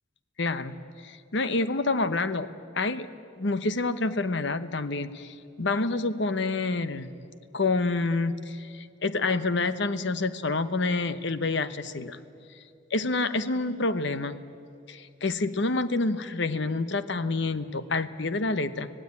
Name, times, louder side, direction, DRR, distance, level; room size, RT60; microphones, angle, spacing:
voice 1, 0.4-0.8 1.0-2.5 2.7-3.1 3.4-7.1 7.5-12.2 12.9-14.3 14.9-18.9, left 3 dB, 60° left, 13 dB, 1.0 m, -28 dB
25.0 x 17.0 x 9.7 m, 2.5 s
head